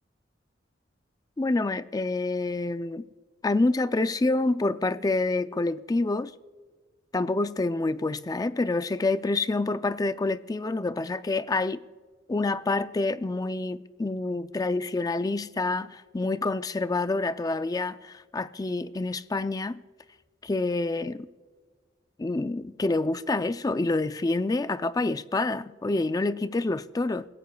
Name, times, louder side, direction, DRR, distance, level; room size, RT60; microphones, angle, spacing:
voice 1, 1.4-3.1 3.4-6.3 7.1-11.8 12.3-19.8 20.4-21.3 22.2-27.3, left 2 dB, 20° left, 0.4 m, -27 dB
27.0 x 16.0 x 2.3 m
head